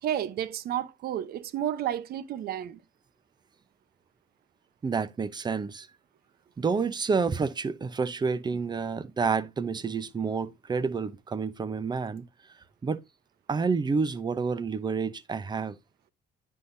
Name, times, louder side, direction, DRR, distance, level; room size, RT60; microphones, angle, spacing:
voice 1, 0.0-2.8, right 11 dB, 65° right, 1.0 m, -31 dB
voice 2, 4.8-5.9 6.6-12.2 12.8-13.0 13.5-15.8, right 5 dB, 25° right, 0.8 m, -29 dB
9.8 x 5.6 x 2.7 m
cardioid pair, 110°, 17 cm